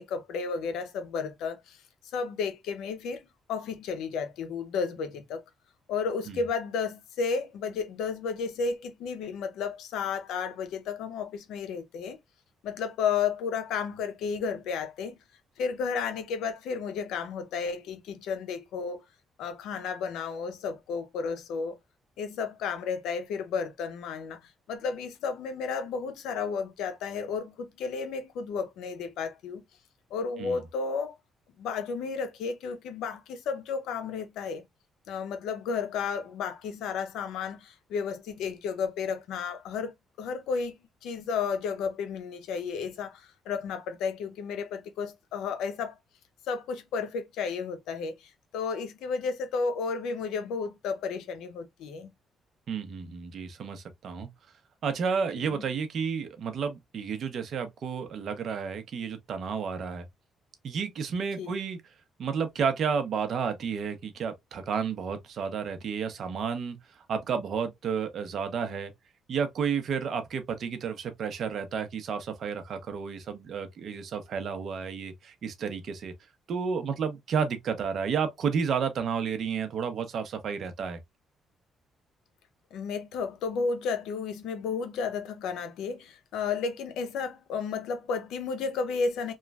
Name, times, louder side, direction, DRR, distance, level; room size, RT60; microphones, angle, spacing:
voice 1, 0.0-1.8 2.1-5.4 5.9-12.2 12.6-15.1 15.6-19.0 19.4-21.8 22.2-24.4 24.7-29.6 30.1-31.1 31.6-34.7 35.1-39.9 40.2-46.0 46.5-52.1 55.4-55.6 61.4-61.5 82.7-89.3, left 5 dB, 90° left, 0.6 m, -32 dB
voice 2, 52.7-54.3 54.8-60.1 60.6-61.8 62.2-66.8 67.1-68.9 69.3-76.1 76.5-81.0, right 6 dB, 60° right, 0.7 m, -31 dB
3.1 x 2.3 x 2.3 m
cardioid pair, 90°, 0 cm